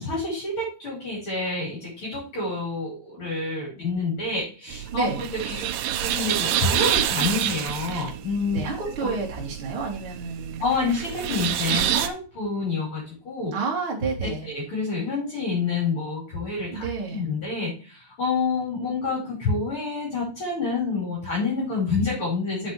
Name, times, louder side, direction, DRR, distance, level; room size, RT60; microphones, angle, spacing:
voice 1, 0.0-5.1 5.3-5.7 6.0-8.6 9.0-9.1 10.6-13.6 14.5-22.7, left 3 dB, 30° left, -4 dB, 5.6 m, -28 dB
sound 1, 4.7-12.1, right 11 dB, 90° right, 2.0 m, -28 dB
voice 2, 4.9-5.2 8.5-10.6 13.5-14.5 16.7-17.2, right 4 dB, 35° right, -1 dB, 3.3 m, -29 dB
8.2 x 8.2 x 3.4 m, 0.34 s
omnidirectional pair, 5.0 m